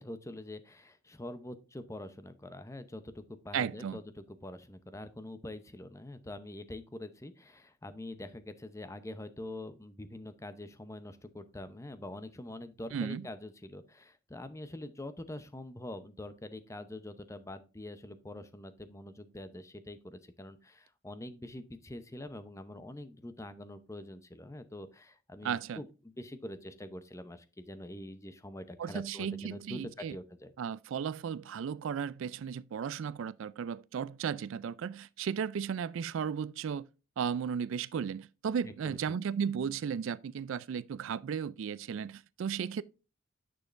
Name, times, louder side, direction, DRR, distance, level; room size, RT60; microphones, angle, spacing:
voice 1, 0.0-30.5 38.6-39.0, left 1 dB, 15° left, 0.6 m, -45 dB
voice 2, 3.5-4.0 12.9-13.3 25.4-25.8 28.8-30.2 30.6-36.9 37.2-42.8, right 7 dB, 60° right, 0.3 m, -35 dB
9.8 x 6.3 x 2.5 m
head